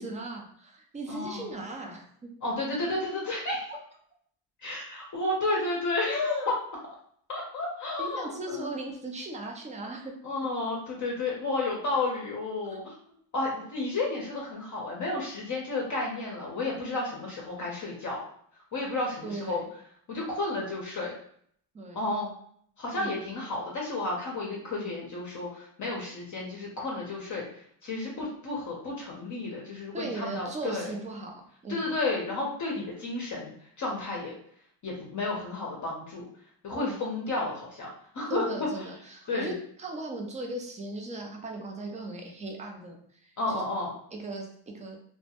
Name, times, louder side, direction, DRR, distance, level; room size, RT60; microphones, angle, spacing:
voice 1, 0.0-2.3 8.0-10.1 12.7-12.8 19.2-19.7 21.7-22.1 22.9-23.2 29.9-31.9 32.7-32.9 36.7-37.0 38.3-43.6 44.1-45.0, right 2 dB, 15° right, 2 dB, 0.3 m, -38 dB
voice 2, 1.1-1.5 2.4-3.7 4.6-6.6 7.3-8.7 10.2-12.9 13.3-18.2 18.7-19.6 20.1-21.1 22.0-22.3 22.8-27.5 27.8-30.9 31.7-34.3 34.8-36.2 36.6-37.9 38.1-38.4 38.8-38.9 39.3-39.5 43.4-43.9, left 2 dB, 35° left, -2 dB, 0.6 m, -32 dB
2.1 x 2.1 x 2.8 m, 0.63 s
supercardioid pair, 90°, 50 cm